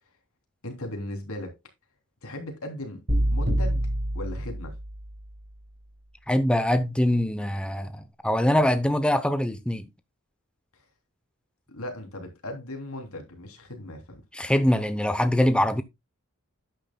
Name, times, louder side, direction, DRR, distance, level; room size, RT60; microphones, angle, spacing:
voice 1, 0.6-1.5 2.2-3.0 3.3-3.9 4.1-4.8 11.7-14.2, left 1 dB, 80° left, 3.2 m, -37 dB
sound 1, 3.1-5.2, equal, 50° right, 4.9 m, -26 dB
voice 2, 6.3-9.8 14.3-15.8, left 1 dB, 5° left, 0.7 m, -23 dB
11.5 x 8.9 x 2.2 m
head